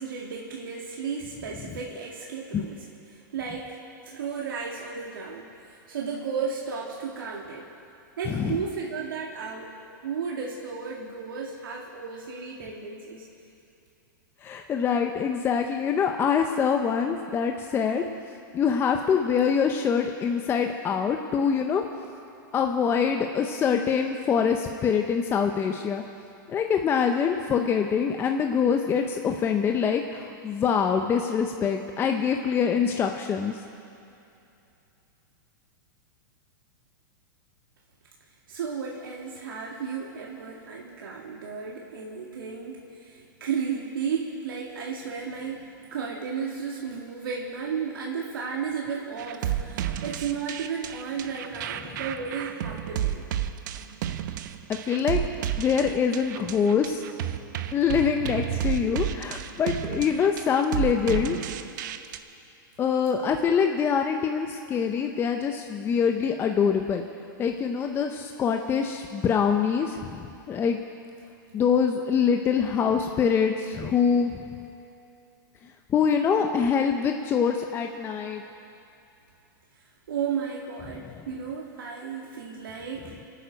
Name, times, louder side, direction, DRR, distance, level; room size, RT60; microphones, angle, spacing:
voice 1, 0.0-2.8 3.1-3.8 4.1-5.5 5.9-7.7 8.2-9.7 10.0-13.3 38.5-53.3 80.1-83.2, right 6 dB, 90° right, -2 dB, 2.2 m, -34 dB
voice 2, 8.3-8.6 14.4-21.8 22.5-26.0 26.5-33.6 54.7-55.2 55.6-57.0 57.7-61.4 62.8-67.0 67.4-70.8 71.5-74.4 75.9-78.4 81.0-81.2, left 6 dB, 20° left, 4 dB, 0.7 m, -24 dB
sound 1, 49.2-62.2, right 11 dB, 60° right, 0.8 m, -32 dB
26.0 x 9.2 x 5.2 m, 2.7 s
hypercardioid pair, 135°, 11 cm